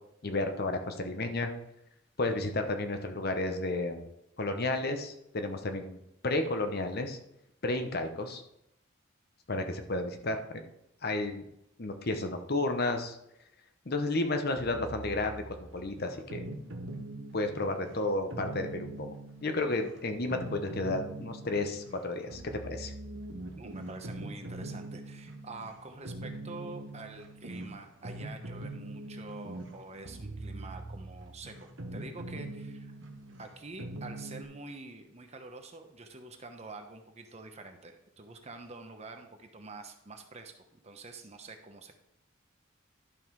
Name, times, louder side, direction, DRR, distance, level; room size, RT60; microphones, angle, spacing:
voice 1, 0.2-1.5 2.2-4.0 4.4-6.0 6.2-7.2 7.6-8.4 9.5-10.6 11.0-11.5 11.8-13.2 13.9-16.5 17.3-19.1 19.4-22.9, left 2 dB, 50° left, 6 dB, 0.9 m, -32 dB
sound 1, 14.6-34.4, right 1 dB, 65° right, 1.1 m, -43 dB
voice 2, 23.6-32.9 33.4-41.9, right 3 dB, 35° right, 5 dB, 1.0 m, -47 dB
11.5 x 5.5 x 4.7 m, 0.82 s
head